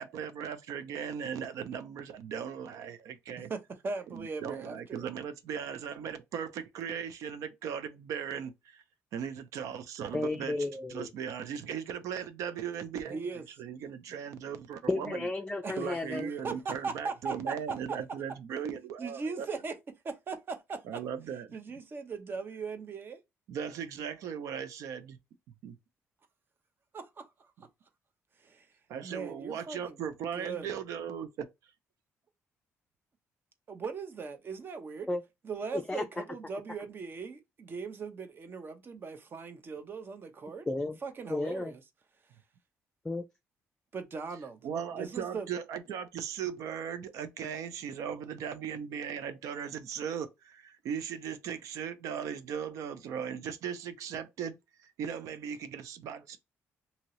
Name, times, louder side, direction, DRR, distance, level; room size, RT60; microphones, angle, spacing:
voice 1, 0.0-3.5 4.1-8.8 9.1-10.6 10.9-13.2 13.6-15.3 15.8-19.5 20.8-21.6 23.5-25.2 25.6-25.8 28.9-31.5 44.6-56.4, right 8 dB, 85° right, 0.5 m, -38 dB
voice 2, 3.5-5.1 13.1-13.4 15.6-17.5 19.0-19.7 20.0-20.8 21.5-23.2 26.9-27.5 28.4-28.7 29.0-30.0 30.3-30.7 33.7-35.1 35.4-40.7 41.0-41.8 43.9-44.6 44.9-45.5, right 4 dB, 40° right, 0.7 m, -39 dB
voice 3, 10.1-11.1 14.9-16.3 35.1-35.2 35.7-36.2 40.7-41.0 41.3-41.7 43.0-43.3, left 2 dB, 15° left, 0.4 m, -33 dB
2.8 x 2.7 x 3.0 m
cardioid pair, 100°, 5 cm